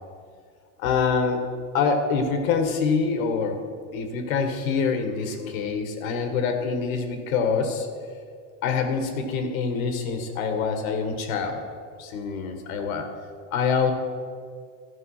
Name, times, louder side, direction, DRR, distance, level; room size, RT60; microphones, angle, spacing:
voice 1, 0.8-1.4 1.7-3.6 3.9-7.9 8.6-11.6 12.0-13.1 13.5-13.9, left 5 dB, 85° left, 5 dB, 1.6 m, -25 dB
13.0 x 5.5 x 5.6 m, 2.1 s
supercardioid pair, 140°, 40 cm